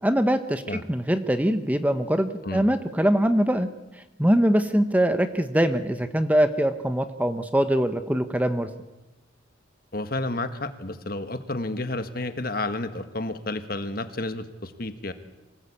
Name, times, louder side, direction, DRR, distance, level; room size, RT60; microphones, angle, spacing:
voice 1, 0.0-3.7 4.2-8.7, equal, 10° right, 9 dB, 0.9 m, -23 dB
voice 2, 9.9-15.1, left 2 dB, 50° left, 9 dB, 1.6 m, -31 dB
25.0 x 18.0 x 8.7 m, 1.0 s
head